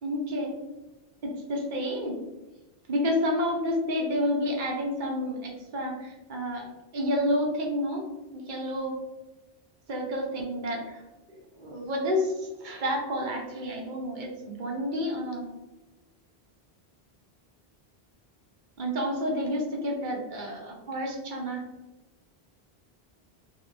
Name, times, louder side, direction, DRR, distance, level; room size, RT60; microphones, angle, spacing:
voice 1, 0.0-0.5 1.2-2.2 2.9-6.7 6.9-8.1 8.3-8.9 9.9-11.0 11.3-15.5 18.8-21.6, equal, 55° right, 0 dB, 0.8 m, -30 dB
2.9 x 2.7 x 2.6 m, 1.1 s
omnidirectional pair, 1.0 m